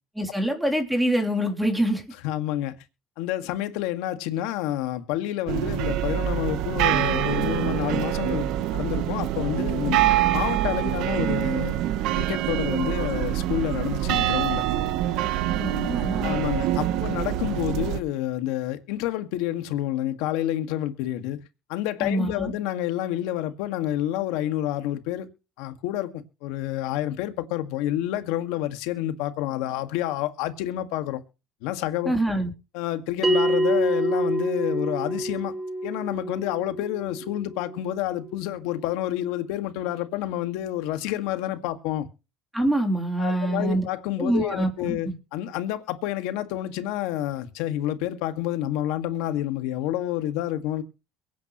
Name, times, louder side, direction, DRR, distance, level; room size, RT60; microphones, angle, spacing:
voice 1, 0.2-2.0 15.1-16.4 22.0-22.5 32.0-32.5 42.5-43.8 44.2-45.1, right 1 dB, 5° right, 3.4 m, -25 dB
voice 2, 2.2-2.8 3.2-10.0 10.3-11.7 12.2-14.6 16.2-21.4 21.7-25.3 25.6-31.2 31.6-32.2 32.7-35.5 35.8-42.1 43.2-50.8, left 13 dB, 85° left, 1.9 m, -29 dB
sound 1, 5.5-18.0, right 12 dB, 75° right, 1.1 m, -25 dB
Bell, 33.2-38.3, right 1 dB, 20° right, 3.1 m, -27 dB
23.0 x 9.5 x 3.1 m
cardioid pair, 110°, 0 cm